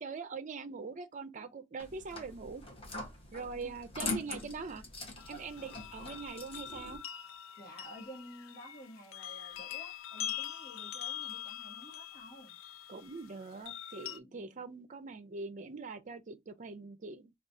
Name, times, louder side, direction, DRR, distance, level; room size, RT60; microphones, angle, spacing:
voice 1, 0.0-2.6 3.3-4.8 5.3-7.0 12.9-17.3, right 4 dB, 40° right, 0.5 m, -43 dB
sound 1, 1.8-7.0, left 2 dB, 30° left, 1.1 m, -42 dB
sound 2, 5.2-14.2, left 11 dB, 75° left, 0.4 m, -44 dB
voice 2, 7.6-12.6 14.1-14.6, equal, 45° left, 1.3 m, -52 dB
4.9 x 2.4 x 2.6 m
head